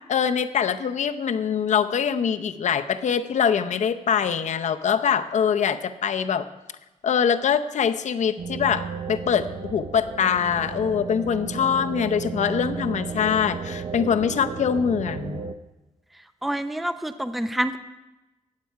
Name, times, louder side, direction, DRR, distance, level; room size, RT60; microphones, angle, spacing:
voice 1, 0.1-6.4 7.0-15.4, left 7 dB, 65° left, 9 dB, 0.7 m, -23 dB
sound 1, 8.4-15.5, right 5 dB, 45° right, 0.6 m, -33 dB
voice 2, 16.4-17.8, right 1 dB, ahead, 10 dB, 0.5 m, -27 dB
17.0 x 7.6 x 4.7 m, 1.1 s
cardioid pair, 95°, 13 cm